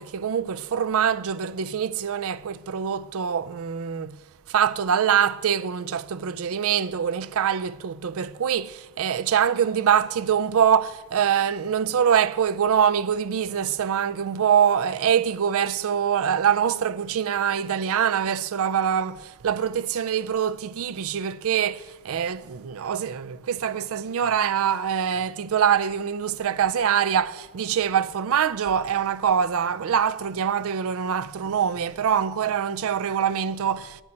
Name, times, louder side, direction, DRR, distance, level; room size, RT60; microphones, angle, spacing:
voice 1, 0.0-4.2 4.5-34.0, right 8 dB, 65° right, 0.4 m, -24 dB
8.7 x 8.0 x 8.6 m
head